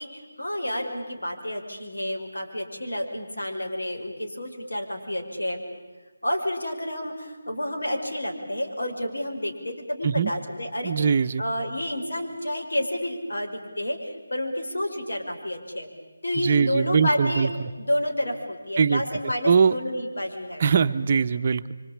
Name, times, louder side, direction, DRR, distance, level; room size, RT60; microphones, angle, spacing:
voice 1, 0.0-5.6 6.2-15.9 16.2-17.5 17.8-20.6, left 1 dB, 90° left, 2 dB, 5.4 m, -30 dB
voice 2, 10.8-11.4 16.4-17.7 18.8-19.7 20.6-21.7, right 6 dB, 35° right, 10 dB, 0.8 m, -22 dB
26.5 x 25.0 x 8.7 m, 1.4 s
figure-of-eight pair, 165°, 0 cm